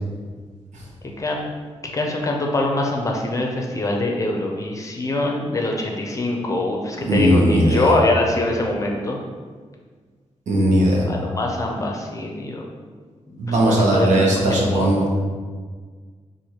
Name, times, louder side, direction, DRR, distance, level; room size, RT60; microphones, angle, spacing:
voice 1, 1.2-1.5 1.9-9.2 11.1-12.7 13.3-14.9, left 2 dB, 25° left, 0 dB, 0.5 m, -24 dB
voice 2, 7.0-7.9 10.5-11.0 13.4-15.2, equal, 90° right, -2 dB, 0.9 m, -18 dB
6.3 x 2.6 x 2.8 m, 1.5 s
wide cardioid pair, 170°, 12 cm